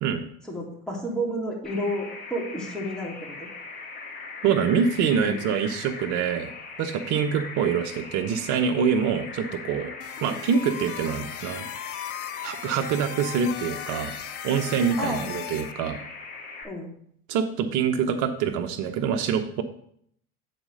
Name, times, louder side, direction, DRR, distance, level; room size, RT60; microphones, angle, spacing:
voice 1, 0.5-3.5 5.2-5.4 15.0-15.3 16.6-16.9, equal, ahead, -2 dB, 2.9 m, -31 dB
sound 1, 1.6-16.6, left 4 dB, 25° left, 2.0 m, -40 dB
voice 2, 4.4-6.5 6.8-9.9 10.2-11.7 12.4-14.1 14.4-16.0 17.3-19.6, right 7 dB, 55° right, 7 dB, 0.9 m, -25 dB
sound 2, 10.0-15.7, left 13 dB, 40° left, 0.6 m, -38 dB
8.0 x 4.2 x 6.3 m, 0.67 s
hypercardioid pair, 80°, 35 cm